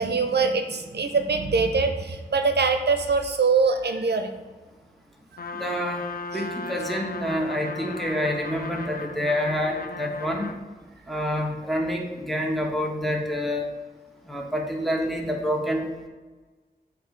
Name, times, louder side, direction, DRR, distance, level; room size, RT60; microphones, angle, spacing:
voice 1, 0.0-4.3 5.4-5.7 6.3-6.4, right 4 dB, 75° right, 6 dB, 0.6 m, -23 dB
Trumpet, 5.4-10.6, left 4 dB, 60° left, 0.4 m, -36 dB
voice 2, 5.5-6.0 6.3-10.5 11.1-13.7 14.3-15.8, equal, ahead, 0 dB, 1.2 m, -27 dB
7.6 x 2.7 x 5.1 m, 1.3 s
cardioid pair, 40°, 17 cm